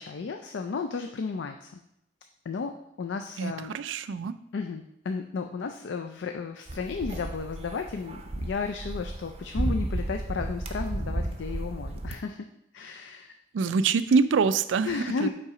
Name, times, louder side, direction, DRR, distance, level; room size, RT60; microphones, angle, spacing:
voice 1, 0.0-1.8 2.5-3.8 4.5-12.5 12.7-13.3 14.8-15.3, left 4 dB, 70° left, 5 dB, 0.4 m, -33 dB
voice 2, 3.4-4.4 13.5-15.3, right 5 dB, 80° right, 13 dB, 0.4 m, -25 dB
sound 1, 6.7-12.1, right 1 dB, 30° right, 0.5 m, -33 dB
5.5 x 4.1 x 4.8 m, 0.77 s
head